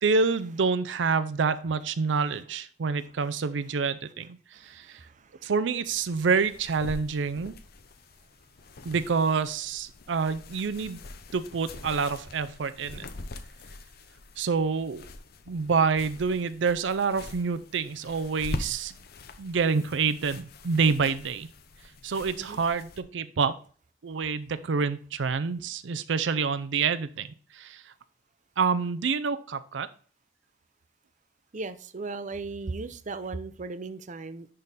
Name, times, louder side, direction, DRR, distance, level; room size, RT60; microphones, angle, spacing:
voice 1, 0.0-5.0 5.4-7.5 8.8-11.0 11.3-13.1 14.4-15.1 15.5-18.9 19.4-21.5 22.0-23.6 24.0-27.9 28.6-29.9, right 5 dB, 85° right, 0.5 m, -27 dB
voice 2, 4.5-5.5 22.3-22.6 31.5-34.5, right 3 dB, 45° right, 0.6 m, -37 dB
sound 1, 5.9-23.0, left 2 dB, 60° left, 0.7 m, -44 dB
10.5 x 3.7 x 4.1 m
head